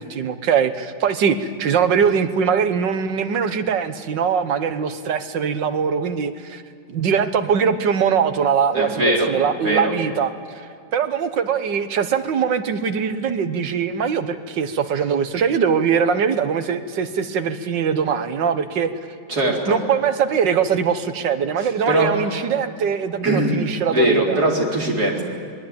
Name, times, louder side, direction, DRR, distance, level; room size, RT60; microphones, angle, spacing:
voice 1, 0.0-6.6 6.9-18.9 19.7-24.4, right 7 dB, 85° right, 10 dB, 1.9 m, -22 dB
voice 2, 8.7-9.9 19.3-19.8 21.6-22.1 23.2-23.7 23.9-25.2, right 1 dB, 60° right, -1 dB, 4.6 m, -21 dB
27.0 x 21.0 x 8.9 m, 2.4 s
omnidirectional pair, 1.9 m